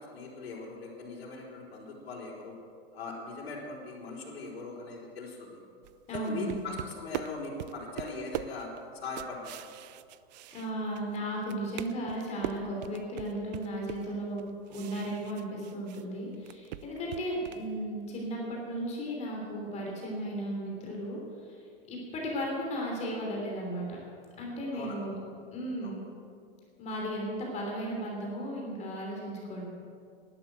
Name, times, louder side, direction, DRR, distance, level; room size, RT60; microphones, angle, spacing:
voice 1, 0.1-2.5 2.9-5.6 6.1-8.7 9.0-9.6 16.9-17.0 24.7-25.0 25.8-25.9, left 3 dB, 75° left, -4 dB, 4.5 m, -40 dB
sound 1, 5.8-11.2 11.4-16.0 16.3-17.7, right 13 dB, 45° right, 0.5 m, -41 dB
voice 2, 6.1-6.7 10.5-14.4 14.7-21.6 21.9-24.0 24.4-25.2 25.5-26.0 26.8-29.6, right 1 dB, 20° left, -1 dB, 3.2 m, -35 dB
12.0 x 11.5 x 7.9 m, 2.3 s
hypercardioid pair, 150°, 31 cm